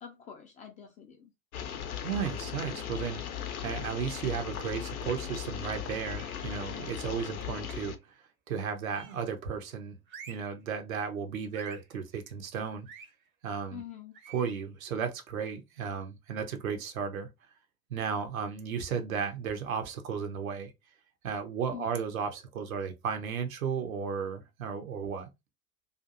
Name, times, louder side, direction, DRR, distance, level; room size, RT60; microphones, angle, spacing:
voice 1, 0.0-1.3 13.7-14.2 21.7-22.0, left 8 dB, 20° left, 0.3 m, -45 dB
sound 1, 1.5-7.9, left 9 dB, 75° left, 0.6 m, -38 dB
voice 2, 2.0-8.0 8.5-10.0 10.3-12.9 13.4-13.8 14.3-17.3 17.9-20.7 21.2-25.3, right 6 dB, 70° right, 0.7 m, -34 dB
sound 2, 6.0-6.5 7.6-8.0 8.9-9.3 10.1-10.5 11.5-11.9 12.8-13.1 14.1-14.6, right 6 dB, 25° right, 0.6 m, -49 dB
2.6 x 2.5 x 2.4 m
figure-of-eight pair, 75°, 44 cm